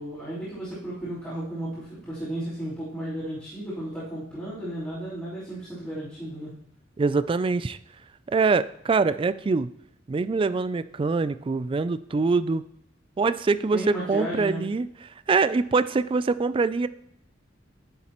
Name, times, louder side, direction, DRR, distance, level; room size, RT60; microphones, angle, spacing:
voice 1, 0.0-6.5 13.7-14.6, right 1 dB, 10° left, -15 dB, 3.9 m, -34 dB
voice 2, 7.0-7.8 8.3-9.7 10.1-12.7 13.2-14.9 15.3-16.9, right 4 dB, 30° right, 14 dB, 0.3 m, -24 dB
10.5 x 7.3 x 3.0 m, 0.73 s
head